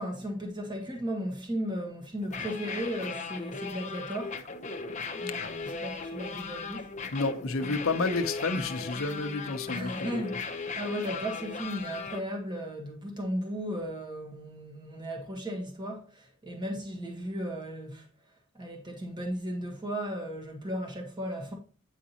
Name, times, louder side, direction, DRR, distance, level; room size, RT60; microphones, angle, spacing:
voice 1, 0.0-4.4 5.1-6.9 9.7-18.1 18.5-21.5, equal, 20° right, 1.6 m, -36 dB
sound 1, 2.2-12.2, left 4 dB, 35° left, 0.8 m, -37 dB
voice 2, 7.1-10.2, left 3 dB, 65° left, 0.8 m, -30 dB
9.1 x 5.0 x 2.9 m
head